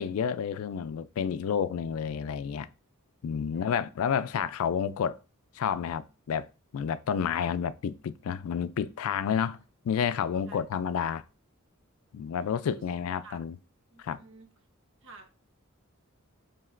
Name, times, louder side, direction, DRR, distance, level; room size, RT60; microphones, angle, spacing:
voice 1, 0.0-2.7 3.2-5.2 5.5-6.5 6.7-11.2 12.1-13.6 14.0-14.2, left 7 dB, 80° left, 0.3 m, -30 dB
voice 2, 3.5-3.9 7.3-7.5 10.5-10.6 12.7-12.8 13.2-13.4 13.9-14.5 15.0-15.3, right 3 dB, 60° right, 1.0 m, -51 dB
7.2 x 2.9 x 2.5 m
head